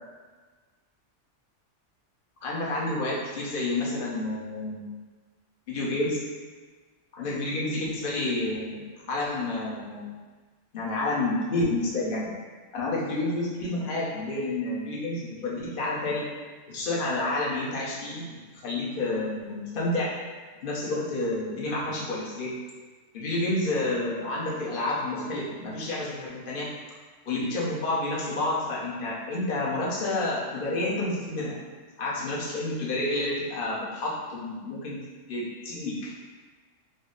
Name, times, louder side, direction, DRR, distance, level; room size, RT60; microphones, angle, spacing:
voice 1, 2.4-4.9 5.7-6.2 7.1-10.1 10.7-12.3 12.7-16.2 16.7-20.1 20.6-22.5 23.1-26.7 27.3-31.5 32.0-35.0 35.3-36.1, left 2 dB, 50° left, -5 dB, 0.9 m, -29 dB
4.0 x 2.0 x 3.7 m, 1.4 s
omnidirectional pair, 1.3 m